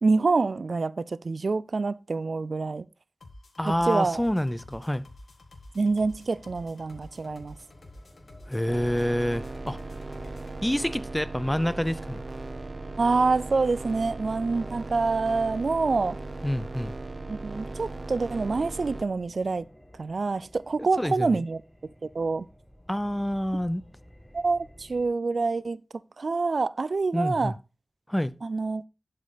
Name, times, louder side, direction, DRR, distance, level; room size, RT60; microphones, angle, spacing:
voice 1, 0.0-2.8 3.6-4.2 5.7-7.6 13.0-16.2 17.3-19.7 20.0-21.6 22.1-22.5 24.3-25.8 26.2-27.5 28.4-28.8, right 3 dB, 75° right, 0.3 m, -26 dB
sound 1, 3.2-10.6, left 1 dB, 90° left, 1.5 m, -49 dB
voice 2, 3.6-5.1 8.5-9.8 10.6-12.2 16.4-16.9 20.8-21.4 22.9-23.8 27.1-27.5 28.1-28.3, equal, 10° left, 0.6 m, -27 dB
Creepy Ambient Noises, 6.0-25.1, equal, 25° left, 5.5 m, -54 dB
sound 2, 8.7-19.0, right 2 dB, 50° right, 1.1 m, -38 dB
11.0 x 5.3 x 4.1 m
wide cardioid pair, 75°, 0 cm